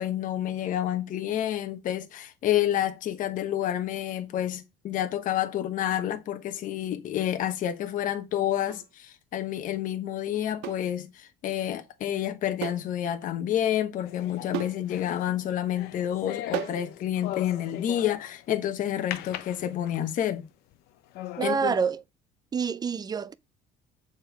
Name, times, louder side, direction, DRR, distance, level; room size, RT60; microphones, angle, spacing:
voice 1, 0.0-20.4 21.4-21.8, left 11 dB, 50° left, 1.0 m, -29 dB
sound 1, 8.7-8.9 10.6-10.9 12.6-12.9 13.2-13.3 14.5-14.8 16.5-16.9, right 16 dB, 85° right, 0.5 m, -34 dB
sound 2, 14.0-18.4 19.1-20.2 20.7-20.8 21.1-21.6, left 13 dB, 75° left, 0.7 m, -39 dB
voice 2, 21.4-22.0 22.5-23.3, right 6 dB, 25° right, 0.5 m, -27 dB
7.1 x 4.4 x 4.5 m
cardioid pair, 120°, 17 cm